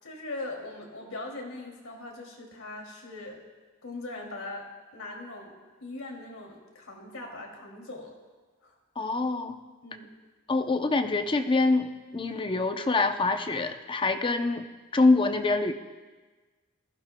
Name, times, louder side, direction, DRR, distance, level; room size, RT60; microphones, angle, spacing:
voice 1, 0.0-3.4 3.8-4.6 4.9-5.5 5.8-8.1 8.6-8.7 9.8-10.1, left 2 dB, 90° left, 0 dB, 2.6 m, -40 dB
voice 2, 9.0-9.6 10.5-14.7 14.9-15.7, left 3 dB, 25° left, 7 dB, 0.6 m, -25 dB
21.0 x 15.0 x 2.2 m, 1.3 s
head